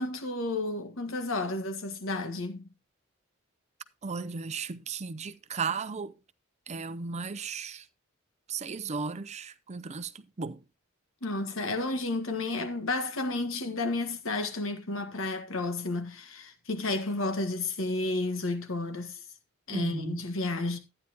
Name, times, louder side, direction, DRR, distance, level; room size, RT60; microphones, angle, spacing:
voice 1, 0.0-2.7 11.2-19.2 19.7-20.8, left 2 dB, 75° left, 1.7 m, -32 dB
voice 2, 4.0-6.1 6.7-7.9 8.5-10.6 19.7-20.2, right 5 dB, 35° right, 0.6 m, -35 dB
11.5 x 9.8 x 2.9 m
head